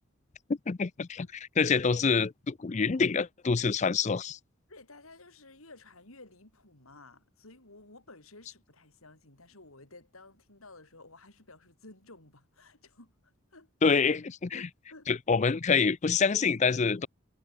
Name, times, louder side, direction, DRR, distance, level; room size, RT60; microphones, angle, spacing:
voice 1, 0.7-1.3 1.6-4.4 13.8-14.7 15.1-17.1, left 5 dB, 35° left, 0.4 m, -26 dB
voice 2, 4.7-14.1 14.5-15.2, left 2 dB, 80° left, 5.4 m, -54 dB
head